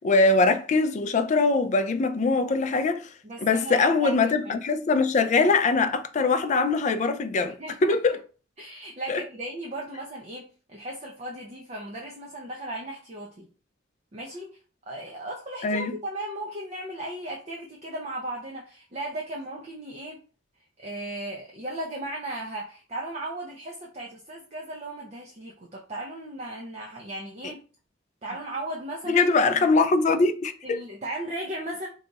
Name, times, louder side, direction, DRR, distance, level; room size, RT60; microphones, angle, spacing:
voice 1, 0.0-3.1 3.4-8.2 9.1-9.2 15.6-15.9 29.1-30.8, left 3 dB, 40° left, 0.3 m, -22 dB
voice 2, 3.2-4.2 4.4-4.6 7.6-8.2 8.6-13.5 14.1-14.6 14.9-20.2 20.8-27.6 28.2-29.7 30.6-31.9, right 1 dB, 35° right, 0.5 m, -36 dB
2.8 x 2.3 x 3.9 m
head